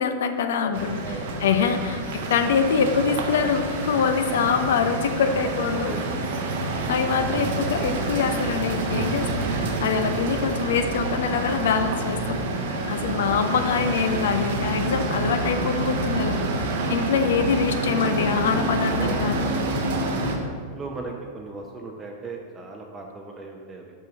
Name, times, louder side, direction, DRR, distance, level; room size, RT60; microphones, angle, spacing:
voice 1, 0.0-1.0 1.4-5.9 6.6-9.5 9.8-16.6 16.9-19.5, left 6 dB, 60° left, 8 dB, 0.5 m, -24 dB
sound 1, 0.7-20.4, right 2 dB, 55° right, 0.9 m, -28 dB
voice 2, 1.0-1.5 1.9-2.2 5.2-5.5 5.9-6.0 10.1-10.2 16.8-17.0 17.8-18.4 18.9-19.2 20.0-23.9, right 3 dB, 20° right, 0 dB, 0.7 m, -39 dB
5.9 x 5.7 x 5.2 m, 2.1 s
figure-of-eight pair, 90°, 0 cm